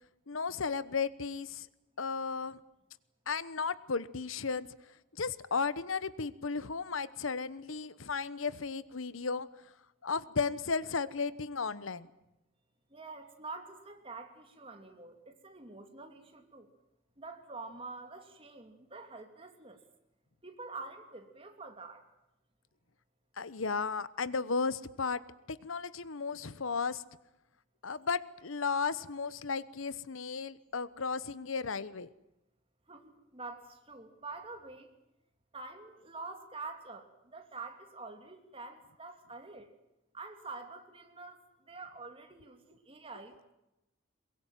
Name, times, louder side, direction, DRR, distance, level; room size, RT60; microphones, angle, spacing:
voice 1, 0.3-1.7 2.0-2.6 3.3-4.7 5.2-9.5 10.0-12.1 23.4-25.2 25.5-27.0 27.8-32.1, left 5 dB, 85° left, 17 dB, 1.0 m, -34 dB
voice 2, 12.9-16.7 17.2-19.8 20.4-22.0 32.9-34.9 35.5-39.7 40.1-41.4 41.7-43.5, right 3 dB, 25° right, 5 dB, 2.8 m, -46 dB
22.5 x 22.5 x 9.2 m, 0.91 s
head